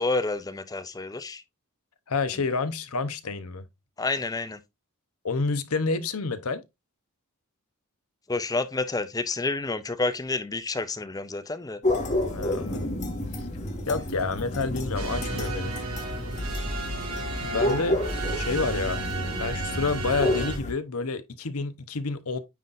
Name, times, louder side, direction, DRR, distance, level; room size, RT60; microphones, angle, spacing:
voice 1, 0.0-1.4 4.0-4.6 8.3-11.8, left 3 dB, 15° left, 0.5 m, -29 dB
voice 2, 2.1-3.6 5.2-6.6 12.3-12.9 13.9-15.7 17.4-18.0 18.4-19.0 19.4-22.4, left 4 dB, 75° left, 0.8 m, -29 dB
sound 1, 11.8-20.7, left 1 dB, 30° left, 1.4 m, -30 dB
sound 2, 14.9-20.6, right 2 dB, 75° right, 4.5 m, -32 dB
9.2 x 4.0 x 2.5 m
head